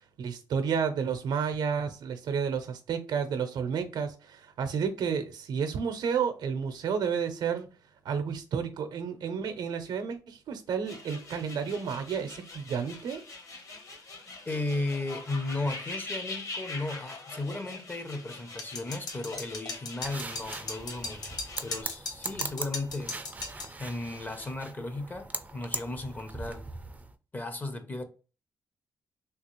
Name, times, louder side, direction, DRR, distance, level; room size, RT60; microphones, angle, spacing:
voice 1, 0.2-7.7 8.0-13.2, right 6 dB, 80° right, 0.6 m, -31 dB
sound 1, 10.8-21.8, left 3 dB, 45° left, 1.1 m, -43 dB
voice 2, 14.5-23.2 23.8-26.7 27.3-28.0, left 2 dB, 25° left, 0.5 m, -35 dB
sound 2, 18.6-23.7, left 3 dB, 65° left, 0.9 m, -37 dB
sound 3, 20.0-27.1, right 3 dB, 20° right, 0.4 m, -40 dB
3.4 x 2.4 x 2.9 m
cardioid pair, 120°, 7 cm